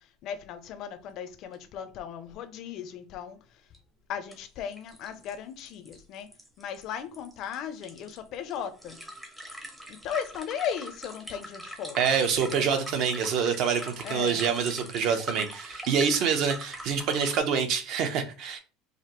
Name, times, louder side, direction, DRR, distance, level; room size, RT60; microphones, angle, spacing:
voice 1, 0.2-3.4 4.1-6.3 6.6-9.0 9.9-12.0 12.5-12.6 14.0-14.4, left 8 dB, 40° left, 0.6 m, -36 dB
sound 1, 1.5-1.6 1.9-2.0 3.7-3.8 4.3-4.4 4.7-17.4, equal, 5° right, 0.7 m, -43 dB
voice 2, 12.0-18.6, right 6 dB, 45° right, 0.8 m, -26 dB
5.0 x 2.6 x 3.0 m
cardioid pair, 165°, 0 cm